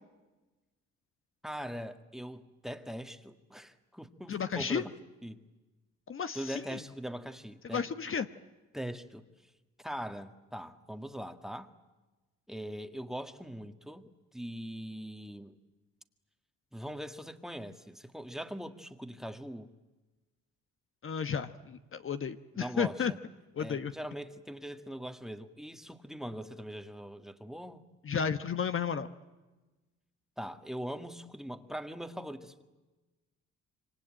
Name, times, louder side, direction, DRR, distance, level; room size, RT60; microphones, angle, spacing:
voice 1, 1.4-4.9 5.2-5.4 6.4-7.9 8.7-9.3 9.8-11.7 12.5-15.6 16.7-19.7 22.5-23.2 23.6-27.8 30.4-32.6, equal, ahead, 1.7 m, -41 dB
voice 2, 4.3-4.8 6.1-6.8 7.7-8.3 21.0-23.1 23.6-23.9 28.0-29.1, left 7 dB, 45° left, 1.2 m, -33 dB
26.5 x 25.0 x 9.0 m
cardioid pair, 90°, 30 cm